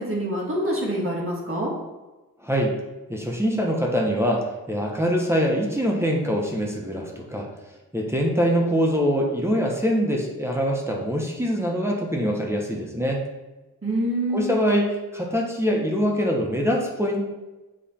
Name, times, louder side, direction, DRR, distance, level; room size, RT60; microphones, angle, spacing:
voice 1, 0.0-1.7 13.8-14.6, right 1 dB, 40° right, -3 dB, 1.8 m, -26 dB
voice 2, 2.4-2.7 3.1-7.5 7.9-13.2 14.3-17.2, equal, 5° right, -1 dB, 1.1 m, -24 dB
7.4 x 3.3 x 4.3 m, 1.1 s
cardioid pair, 75°, 35 cm